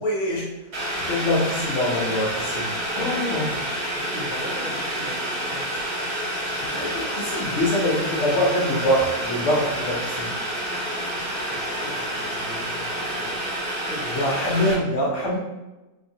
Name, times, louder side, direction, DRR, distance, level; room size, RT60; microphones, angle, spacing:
voice 1, 0.0-3.7 6.6-10.4 14.1-15.4, left 1 dB, 60° left, -3 dB, 0.9 m, -24 dB
Boiling, 0.7-14.7, right 1 dB, 70° right, 1.8 m, -28 dB
voice 2, 4.0-5.7 11.5-13.4 13.9-14.2, equal, 50° right, -14 dB, 1.7 m, -39 dB
3.3 x 2.7 x 2.6 m, 1.0 s
omnidirectional pair, 1.7 m